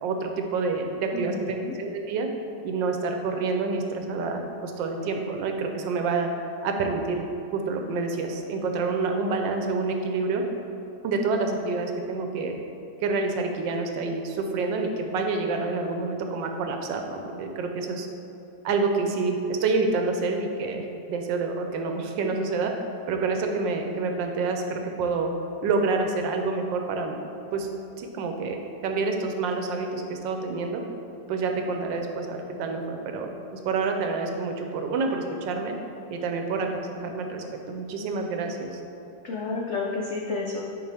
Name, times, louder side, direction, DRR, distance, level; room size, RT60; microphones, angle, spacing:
voice 1, 0.0-2.3 2.6-6.3 6.6-10.4 11.0-12.5 13.0-18.1 18.6-22.7 23.1-25.3 25.6-27.2 27.5-27.7 28.0-28.6 28.8-30.8 31.3-35.8 36.1-38.8, right 4 dB, 85° right, 4 dB, 1.4 m, -28 dB
voice 2, 1.1-1.8 39.2-40.6, left 3 dB, 80° left, -2 dB, 0.6 m, -30 dB
9.4 x 4.4 x 3.4 m, 2.9 s
omnidirectional pair, 1.9 m